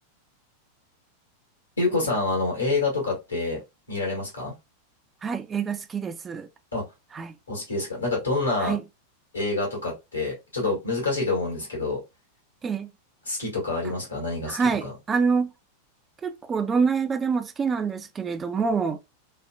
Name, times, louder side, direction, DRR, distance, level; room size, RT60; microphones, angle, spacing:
voice 1, 1.8-3.6 3.9-4.5 6.7-6.9 7.5-8.8 9.3-12.0 13.3-14.9, left 3 dB, 75° left, 1.5 m, -27 dB
voice 2, 5.2-6.5 7.1-7.3 8.6-8.8 12.6-12.9 14.5-15.5 16.2-19.0, right 5 dB, 20° right, 0.4 m, -26 dB
3.1 x 2.3 x 2.2 m
figure-of-eight pair, 90°, 0 cm